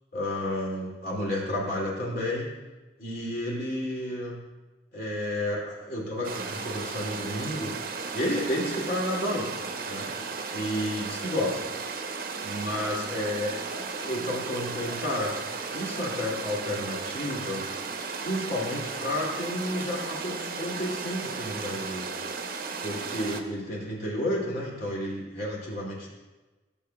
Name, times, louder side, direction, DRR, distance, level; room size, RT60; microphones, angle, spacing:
voice 1, 0.1-2.5 3.0-4.4 4.9-7.7 8.1-9.5 9.8-10.1 10.5-11.6 12.4-15.3 15.7-17.7 18.2-22.1 22.8-26.1, left 1 dB, 55° left, -5 dB, 2.6 m, -31 dB
sound 1, 6.2-23.4, right 4 dB, 50° right, 0.8 m, -35 dB
15.5 x 7.5 x 2.3 m, 1.2 s
head